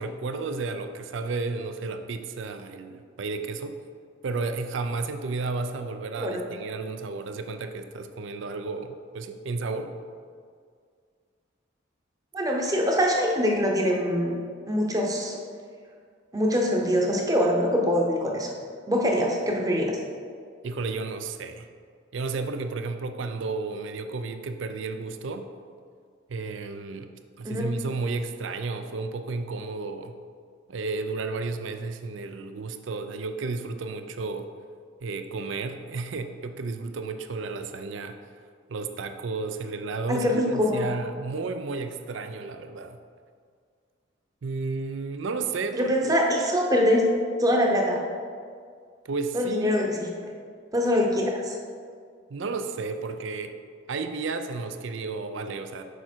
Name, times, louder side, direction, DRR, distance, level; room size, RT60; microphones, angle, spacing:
voice 1, 0.0-3.8 4.2-9.9 20.6-21.7 22.1-25.5 26.3-30.2 30.7-34.5 35.0-38.2 38.7-43.0 44.4-46.1 49.0-49.7 52.3-53.6 53.9-55.8, right 3 dB, 70° right, 8 dB, 0.5 m, -32 dB
voice 2, 12.3-14.4 14.7-15.4 16.3-18.5 18.9-20.0 27.4-27.7 40.1-40.8 45.7-47.1 47.4-48.0 49.3-50.1 50.7-51.6, equal, 20° right, 0 dB, 0.8 m, -24 dB
6.5 x 5.1 x 4.4 m, 2.1 s
head